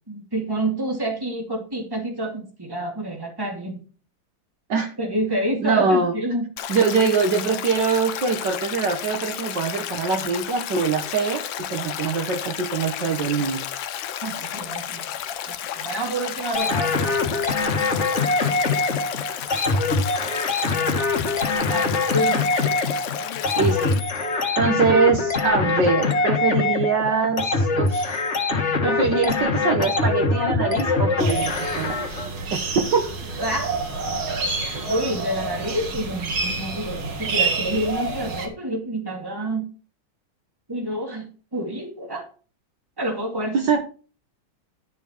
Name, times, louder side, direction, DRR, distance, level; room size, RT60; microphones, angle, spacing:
voice 1, 0.1-3.8 5.0-6.5 14.2-15.1 15.5-17.4 21.6-22.5 33.4-33.7 34.9-39.6 40.7-42.3 43.0-43.7, right 1 dB, 10° right, 1 dB, 2.4 m, -28 dB
voice 2, 5.6-6.1 6.7-11.4 11.7-13.7 23.6-23.9 24.6-28.2 28.8-32.0 32.5-33.1 43.7-43.8, right 4 dB, 60° right, 5 dB, 1.8 m, -23 dB
Stream, 6.6-24.0, left 10 dB, 75° left, 1.5 m, -32 dB
sound 1, 16.5-32.3, left 3 dB, 35° left, 1.7 m, -23 dB
sound 2, 31.2-38.5, right 3 dB, 80° right, 2.8 m, -28 dB
11.5 x 7.1 x 4.5 m, 0.37 s
omnidirectional pair, 2.2 m